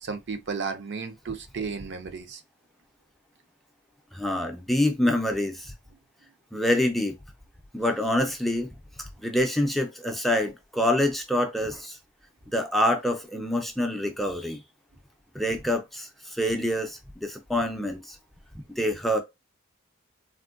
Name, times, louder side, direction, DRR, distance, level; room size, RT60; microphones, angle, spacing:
voice 1, 0.0-2.4, right 5 dB, 60° right, 0.5 m, -33 dB
voice 2, 4.1-5.7 6.5-7.1 7.7-8.7 9.2-12.0 12.5-14.6 15.3-18.2 18.8-19.2, left 1 dB, ahead, 0.4 m, -26 dB
3.5 x 2.1 x 2.4 m
head